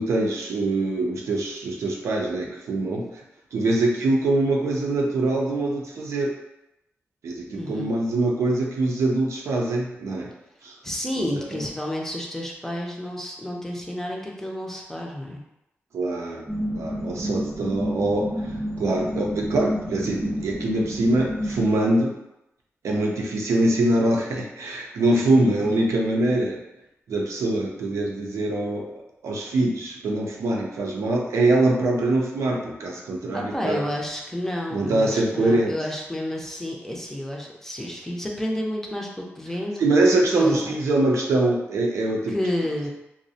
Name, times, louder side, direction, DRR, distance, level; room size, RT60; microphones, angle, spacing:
voice 1, 0.0-3.1 3.5-6.3 7.2-10.3 10.6-10.7 11.5-11.6 15.9-16.5 16.7-18.3 18.8-22.1 22.8-26.6 27.1-28.8 29.2-33.9 34.7-35.7 39.8-42.3, right 2 dB, 80° right, -1 dB, 0.4 m, -23 dB
voice 2, 7.5-7.9 10.8-15.4 33.3-40.6 42.3-42.9, left 1 dB, 10° left, -2 dB, 0.5 m, -30 dB
sound 1, 16.5-21.7, equal, 30° right, 0.9 m, -30 dB
2.4 x 2.0 x 2.6 m, 0.90 s
cardioid pair, 70°, 5 cm